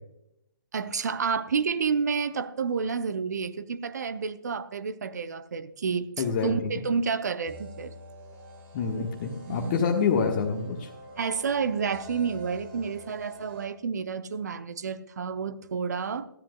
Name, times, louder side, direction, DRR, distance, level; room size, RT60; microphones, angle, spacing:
voice 1, 0.7-6.1 6.4-7.9 9.4-9.8 11.2-16.3, right 5 dB, 50° right, 0.7 m, -30 dB
voice 2, 6.2-6.8 8.7-10.9, left 5 dB, 30° left, 1.3 m, -27 dB
sound 1, 7.4-13.7, right 1 dB, 20° right, 2.0 m, -47 dB
17.5 x 13.5 x 2.3 m
figure-of-eight pair, 140°, 12 cm